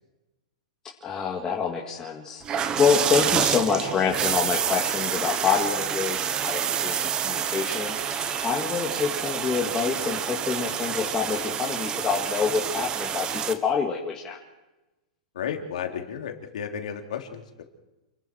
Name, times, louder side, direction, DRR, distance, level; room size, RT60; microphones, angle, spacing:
voice 1, 1.0-14.4, left 6 dB, 15° left, -2 dB, 2.2 m, -27 dB
sound 1, 2.4-13.5, right 8 dB, 20° right, 1.2 m, -28 dB
voice 2, 15.3-17.6, left 8 dB, 80° left, 3 dB, 3.5 m, -33 dB
29.0 x 20.5 x 4.7 m, 1.0 s
supercardioid pair, 155°, 4 cm